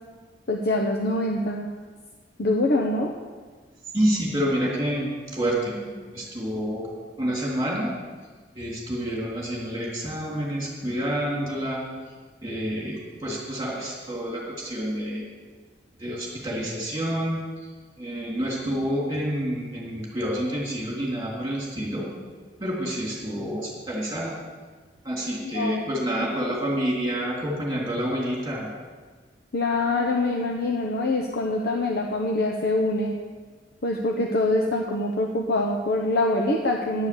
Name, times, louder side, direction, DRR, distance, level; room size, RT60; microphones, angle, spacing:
voice 1, 0.5-1.7 2.4-3.1 25.4-25.9 29.5-33.2 33.8-37.1, left 2 dB, 60° left, 1 dB, 0.9 m, -24 dB
voice 2, 3.9-6.9 7.2-7.9 8.5-11.8 12.4-15.3 16.0-17.4 18.0-22.1 22.6-24.3 25.0-28.7, equal, 20° right, -3 dB, 3.5 m, -28 dB
11.0 x 7.4 x 8.0 m, 1.5 s
head